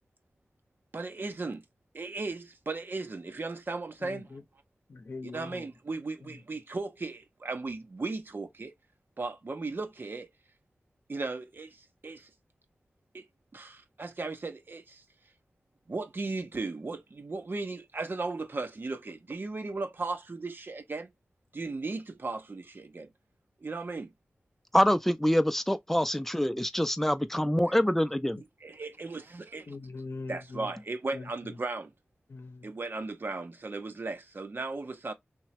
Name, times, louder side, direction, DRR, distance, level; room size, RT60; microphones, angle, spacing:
voice 1, 0.9-1.6 1.9-4.4 5.2-8.7 9.2-10.3 11.1-12.3 13.1-13.3 13.5-15.0 15.9-21.1 21.5-23.1 23.6-24.1 28.6-29.8 30.3-31.9 32.6-35.1, right 3 dB, 55° right, 0.7 m, -36 dB
voice 2, 4.0-4.4 4.9-5.6 29.7-30.7 31.1-31.2 32.3-32.7, left 3 dB, 65° left, 0.7 m, -41 dB
voice 3, 24.7-28.4, equal, 5° left, 0.5 m, -25 dB
3.1 x 2.2 x 2.8 m
cardioid pair, 50°, 4 cm